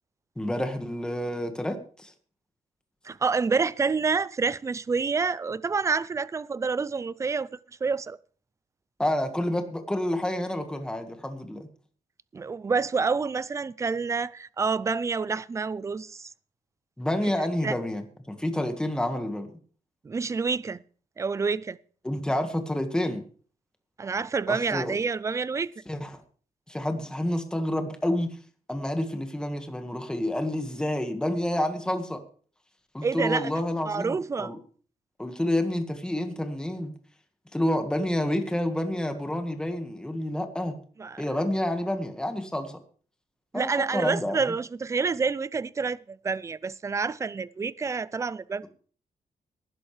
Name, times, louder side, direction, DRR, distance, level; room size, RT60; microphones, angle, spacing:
voice 1, 0.3-2.1 9.0-11.7 17.0-18.0 18.3-19.5 22.0-23.2 24.5-25.0 25.9-26.2 26.7-28.3 28.7-32.2 32.9-34.6 35.2-36.9 37.5-40.7 41.2-42.7 43.5-44.4, left 1 dB, 5° left, 1.6 m, -29 dB
voice 2, 3.0-7.5 7.8-8.2 12.3-16.3 17.6-17.7 20.0-20.8 21.2-21.8 24.0-25.7 33.0-33.5 33.9-34.5 41.0-41.2 43.5-48.7, right 4 dB, 20° right, 0.5 m, -28 dB
19.0 x 11.0 x 3.3 m
cardioid pair, 145°, 14 cm